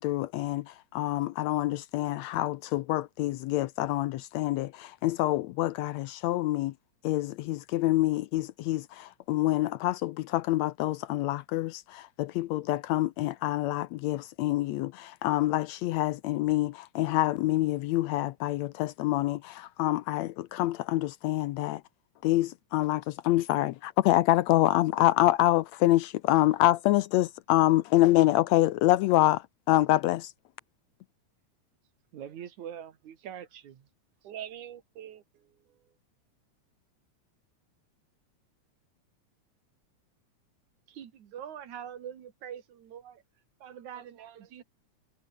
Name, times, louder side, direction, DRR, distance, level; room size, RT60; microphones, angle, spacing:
voice 1, 0.0-6.7 7.0-21.8 22.2-30.3, left 16 dB, 75° left, 1.7 m, -26 dB
voice 2, 32.1-33.8 40.9-43.2 43.6-44.6, right 9 dB, 70° right, 3.3 m, -43 dB
voice 3, 34.2-35.9 43.9-44.6, right 10 dB, 90° right, 3.2 m, -46 dB
omnidirectional pair, 3.5 m